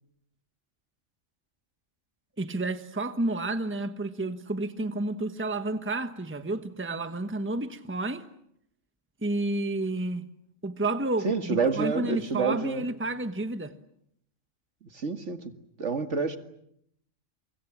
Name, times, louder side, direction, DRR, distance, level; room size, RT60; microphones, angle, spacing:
voice 1, 2.4-8.3 9.2-10.3 10.6-13.7, right 2 dB, 10° right, 1.2 m, -30 dB
voice 2, 11.2-12.9 14.9-15.4 15.8-16.4, right 4 dB, 65° right, 2.2 m, -28 dB
30.0 x 25.0 x 7.3 m
omnidirectional pair, 1.3 m